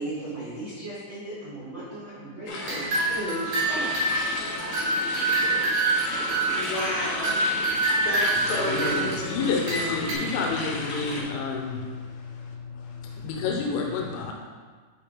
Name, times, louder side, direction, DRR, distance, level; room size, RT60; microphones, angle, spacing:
voice 1, 0.0-4.5, right 1 dB, 75° right, -13 dB, 1.0 m, -36 dB
sound 1, 2.5-11.2, left 2 dB, 70° left, 2.1 m, -34 dB
sound 2, 2.6-10.1, right 2 dB, 50° right, 1.8 m, -27 dB
voice 2, 6.5-7.4 7.9-9.7, left 1 dB, 55° left, -10 dB, 1.5 m, -31 dB
voice 3, 8.7-14.3, left 4 dB, 90° left, 0 dB, 3.3 m, -30 dB
7.9 x 5.0 x 3.7 m, 1.5 s
omnidirectional pair, 5.7 m